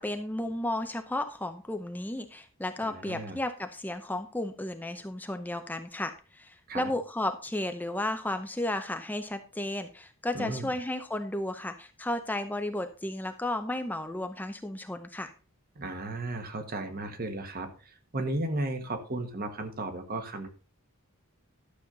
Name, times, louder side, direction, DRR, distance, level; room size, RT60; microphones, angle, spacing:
voice 1, 0.0-15.3, left 1 dB, 10° left, 7 dB, 0.6 m, -33 dB
voice 2, 2.8-3.4 6.7-6.9 10.3-10.7 15.7-20.5, right 2 dB, 45° right, 7 dB, 1.4 m, -35 dB
12.0 x 7.1 x 3.9 m, 0.35 s
head